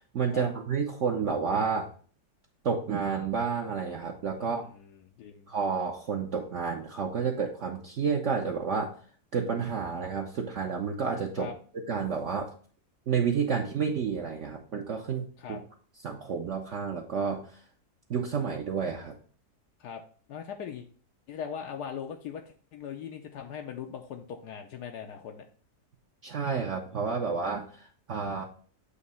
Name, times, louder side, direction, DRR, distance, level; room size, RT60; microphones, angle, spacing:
voice 1, 0.0-1.9 2.6-4.6 5.5-9.0 9.3-11.5 11.9-12.5 13.1-15.6 16.0-17.4 18.1-19.2 26.2-28.4, right 6 dB, 55° right, 0 dB, 1.0 m, -30 dB
voice 2, 4.4-5.5 11.4-11.5 15.4-15.6 19.8-20.0 20.3-20.9 21.3-22.4 22.7-25.5, left 7 dB, 80° left, 3 dB, 1.3 m, -40 dB
8.3 x 2.9 x 5.5 m, 0.43 s
omnidirectional pair, 1.8 m